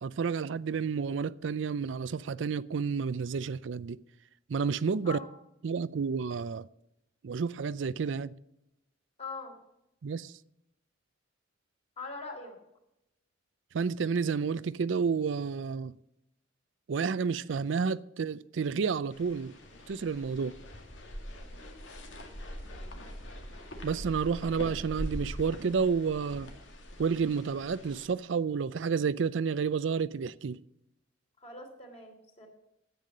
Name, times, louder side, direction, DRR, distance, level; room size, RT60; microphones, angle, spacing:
voice 1, 0.0-4.0 4.5-5.2 5.6-6.7 7.2-8.3 10.0-10.3 13.7-15.9 16.9-19.5 19.9-20.5 23.8-26.5 27.0-30.6, right 5 dB, 80° right, 0.4 m, -30 dB
voice 2, 9.2-9.6 12.0-12.6 21.3-21.6 31.4-32.5, left 4 dB, 35° left, 3.2 m, -42 dB
sound 1, 19.1-28.0, equal, 85° left, 2.1 m, -43 dB
10.5 x 8.3 x 7.4 m
head